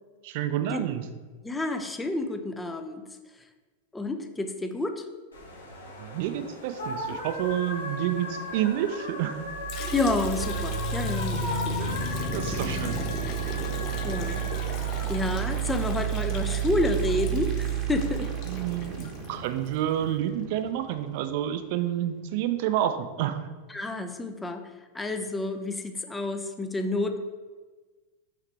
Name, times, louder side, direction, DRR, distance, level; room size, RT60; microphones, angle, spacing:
voice 1, 0.2-1.1 6.0-9.5 11.8-12.0 12.3-13.0 18.5-23.4, right 11 dB, 50° right, 10 dB, 0.5 m, -29 dB
voice 2, 1.4-3.0 3.9-5.0 9.9-11.8 12.1-12.2 12.5-12.6 14.0-14.4 15.1-18.3 23.7-24.6 24.9-27.2, left 2 dB, 10° left, 6 dB, 0.5 m, -29 dB
sound 1, 5.3-15.9, left 2 dB, 75° left, 1.5 m, -38 dB
sound 2, 9.4-21.4, right 7 dB, 35° right, 0.9 m, -31 dB
Liquid, 9.7-19.8, left 5 dB, 40° left, 0.7 m, -41 dB
6.1 x 5.7 x 3.3 m, 1.3 s
figure-of-eight pair, 90°, 0 cm